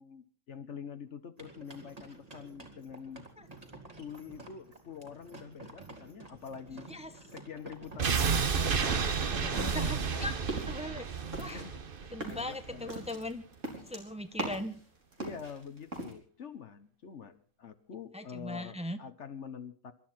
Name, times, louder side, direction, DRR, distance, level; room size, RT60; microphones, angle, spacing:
voice 1, 0.0-3.2 4.0-6.9 7.3-8.8 9.0-10.3 11.5-11.8 12.2-12.9 15.2-19.9, left 7 dB, 65° left, 10 dB, 1.4 m, -46 dB
sound 1, 1.4-11.3, right 2 dB, 30° right, 2.6 m, -52 dB
voice 2, 6.7-7.1 9.2-11.0 11.4-11.6 12.1-13.4 13.9-14.8 18.1-19.0, left 1 dB, 5° right, 9 dB, 0.9 m, -39 dB
sound 2, 8.0-12.9 13.2-13.3, right 6 dB, 45° right, 1.2 m, -31 dB
sound 3, 8.1-9.3 9.6-10.1 10.4-10.8 11.3-14.8 15.1-16.1, right 2 dB, 75° right, 4.4 m, -40 dB
26.0 x 12.5 x 4.4 m, 0.42 s
omnidirectional pair, 1.3 m